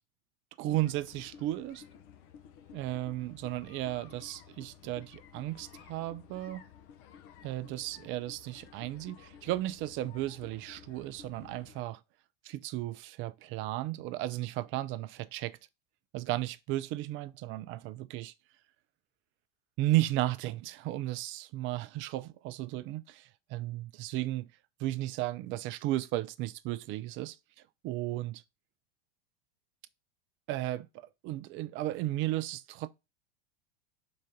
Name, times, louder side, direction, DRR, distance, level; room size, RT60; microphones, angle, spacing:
voice 1, 0.6-1.8 2.7-6.6 7.4-12.0 12.4-15.6 16.1-18.3 19.8-24.5 24.8-27.4 27.8-28.4 30.5-32.9, right 16 dB, 45° right, 0.5 m, -34 dB
sound 1, 0.7-11.8, left 8 dB, 50° left, 1.0 m, -54 dB
5.4 x 3.9 x 5.1 m
hypercardioid pair, 95°, 29 cm